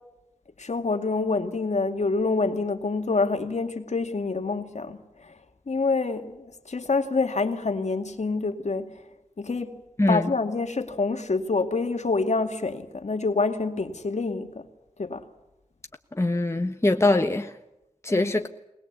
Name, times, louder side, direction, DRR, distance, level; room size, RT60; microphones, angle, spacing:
voice 1, 0.6-5.4 5.7-9.0 9.4-9.7 10.1-14.7 15.0-15.2 18.1-18.5, left 3 dB, 60° left, 2.2 m, -27 dB
voice 2, 16.1-17.5 18.0-18.5, left 2 dB, 20° left, 1.3 m, -22 dB
21.0 x 20.5 x 8.3 m
wide cardioid pair, 60°, 13 cm